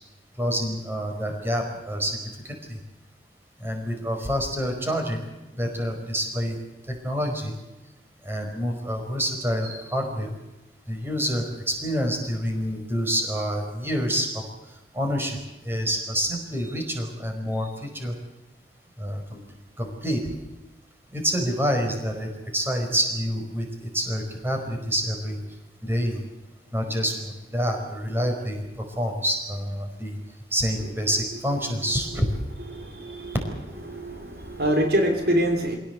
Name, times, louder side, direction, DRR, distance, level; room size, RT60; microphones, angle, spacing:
voice 1, 0.4-2.8 3.6-5.3 5.6-6.6 6.9-7.5 8.2-10.3 10.9-14.4 14.9-15.4 15.6-18.1 19.0-19.4 19.8-20.2 21.1-25.4 25.8-26.2 26.7-30.2 30.5-32.3, equal, 10° right, 3 dB, 5.0 m, -27 dB
voice 2, 32.6-33.3 33.9-35.8, equal, 55° right, 5 dB, 3.1 m, -25 dB
26.0 x 17.5 x 8.1 m, 1.0 s
head